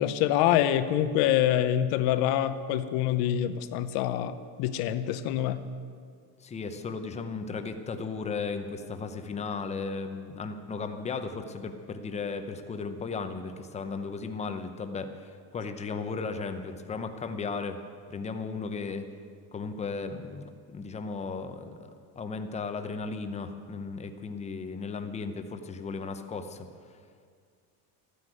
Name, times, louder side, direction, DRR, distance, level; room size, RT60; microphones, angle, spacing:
voice 1, 0.0-5.7, left 11 dB, 60° left, 11 dB, 0.9 m, -26 dB
voice 2, 6.4-17.8 18.1-19.0 19.5-21.8 22.2-26.7, left 4 dB, 15° left, 8 dB, 0.8 m, -35 dB
14.0 x 9.8 x 9.1 m, 2.1 s
cardioid pair, 165°, 42 cm